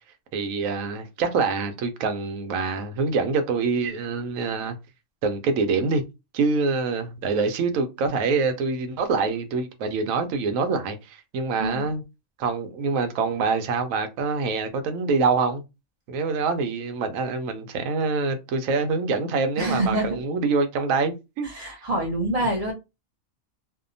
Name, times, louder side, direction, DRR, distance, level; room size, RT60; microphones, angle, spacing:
voice 1, 0.3-4.8 5.2-6.0 6.3-12.0 12.4-15.6 16.1-21.5, right 4 dB, 85° right, 1.0 m, -25 dB
voice 2, 11.6-11.9 19.6-20.2 21.4-22.7, right 1 dB, 45° right, 0.5 m, -26 dB
2.7 x 2.1 x 2.5 m
omnidirectional pair, 1.4 m